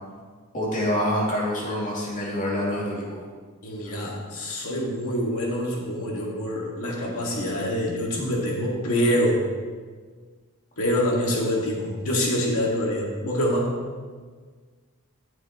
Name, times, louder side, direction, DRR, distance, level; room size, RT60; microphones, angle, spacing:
voice 1, 0.5-3.2, equal, 35° left, -5 dB, 2.5 m, -26 dB
voice 2, 3.6-9.4 10.8-13.8, equal, 70° left, -2 dB, 2.0 m, -25 dB
12.5 x 7.5 x 3.0 m, 1.5 s
head